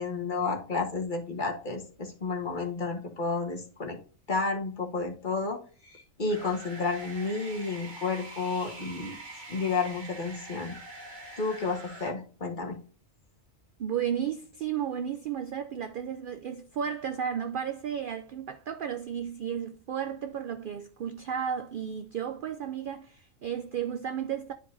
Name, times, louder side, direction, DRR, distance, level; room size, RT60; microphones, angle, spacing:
voice 1, 0.0-4.0 4.3-5.6 5.9-9.2 9.5-10.8 11.4-12.8, left 4 dB, 40° left, 1.4 m, -31 dB
sound 1, 6.3-12.1, right 2 dB, 35° right, 1.6 m, -44 dB
voice 2, 13.8-24.5, right 8 dB, 70° right, 0.5 m, -33 dB
10.5 x 4.6 x 2.6 m
omnidirectional pair, 1.4 m